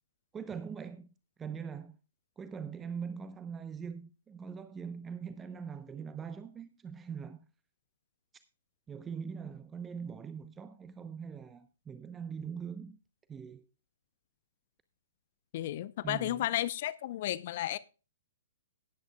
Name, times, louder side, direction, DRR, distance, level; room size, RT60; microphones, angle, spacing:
voice 1, 0.3-1.1 1.4-2.0 2.4-7.5 8.9-13.0 13.3-13.6 16.0-16.5, right 6 dB, 15° right, 0.7 m, -42 dB
voice 2, 15.5-17.8, left 13 dB, 50° left, 0.6 m, -33 dB
18.0 x 9.1 x 2.3 m
figure-of-eight pair, 125°, 0 cm